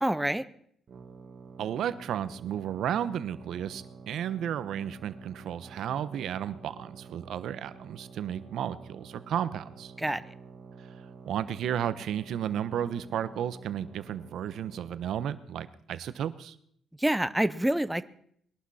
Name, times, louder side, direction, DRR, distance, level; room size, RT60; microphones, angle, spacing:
voice 1, 0.0-0.4 10.0-10.2 17.0-18.0, right 1 dB, 5° right, 13 dB, 0.7 m, -27 dB
sound 1, 0.9-15.4, right 5 dB, 50° right, 1.9 m, -49 dB
voice 2, 1.6-9.9 11.3-16.5, right 9 dB, 75° right, 14 dB, 0.9 m, -33 dB
21.0 x 11.5 x 4.2 m, 0.66 s
cardioid pair, 90°, 0 cm